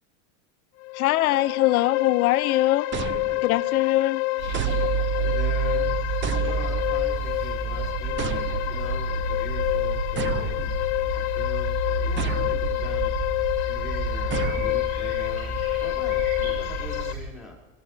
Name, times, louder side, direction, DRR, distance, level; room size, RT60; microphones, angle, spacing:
sound 1, 0.8-17.1, left 23 dB, 55° left, 0.6 m, -28 dB
voice 1, 0.9-2.9 3.4-4.2, left 16 dB, 90° left, 17 dB, 0.8 m, -21 dB
sound 2, 2.9-3.8 4.5-5.4 6.2-7.1 8.2-9.0 10.2-11.2 12.2-12.9 14.3-15.2, right 10 dB, 30° right, 0.7 m, -34 dB
sound 3, 4.4-17.2, right 3 dB, 90° right, 7.2 m, -29 dB
voice 2, 5.1-8.3 8.7-10.7 11.1-13.2 13.6-17.6, left 2 dB, ahead, -3 dB, 5.5 m, -42 dB
28.0 x 15.0 x 3.4 m, 1.3 s
supercardioid pair, 120°, 42 cm